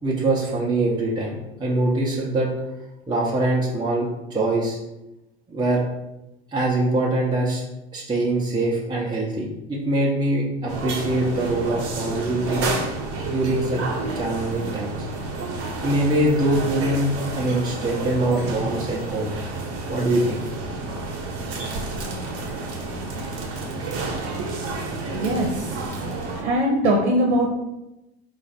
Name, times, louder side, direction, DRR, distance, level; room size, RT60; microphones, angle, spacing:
voice 1, 0.0-2.5 3.1-4.8 5.5-5.8 6.5-7.6 7.9-12.7 13.2-13.8 14.1-15.1 15.8-19.4 19.9-20.4, right 1 dB, 15° right, -4 dB, 0.8 m, -23 dB
sound 1, 10.7-26.4, right 3 dB, 45° right, 1.0 m, -30 dB
voice 2, 24.1-25.8 26.4-27.5, right 1 dB, 80° right, 0 dB, 0.7 m, -23 dB
4.1 x 2.5 x 4.1 m, 0.95 s
hypercardioid pair, 80°, 33 cm